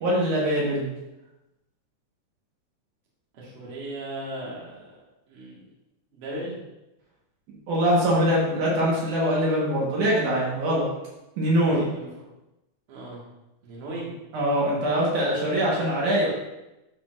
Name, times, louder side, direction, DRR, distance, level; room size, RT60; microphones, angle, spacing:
voice 1, 0.0-0.9 7.7-10.9 11.4-11.9 14.3-16.3, equal, 70° right, -4 dB, 3.0 m, -23 dB
voice 2, 3.3-5.0 5.3-5.6 6.1-6.6 11.6-12.2 12.9-13.2 13.6-14.1, right 1 dB, 50° right, -5 dB, 2.6 m, -37 dB
9.6 x 7.0 x 2.6 m, 0.96 s
omnidirectional pair, 3.7 m